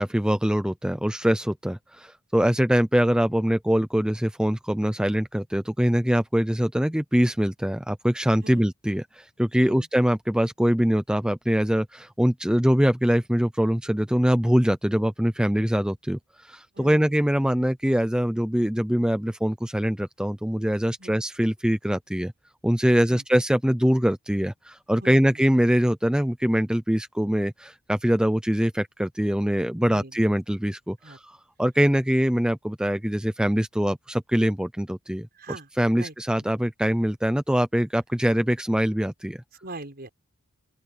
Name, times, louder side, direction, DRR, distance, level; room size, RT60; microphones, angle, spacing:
voice 1, 0.0-22.3 22.6-35.3 35.8-39.4, equal, 5° right, 0.6 m, -23 dB
voice 2, 9.5-9.9 16.7-17.2 21.0-21.2 23.1-23.2 25.0-25.4 29.9-30.2 31.0-31.2 35.4-35.7 36.0-36.1 39.6-40.1, right 2 dB, 45° right, 6.2 m, -41 dB
open air
head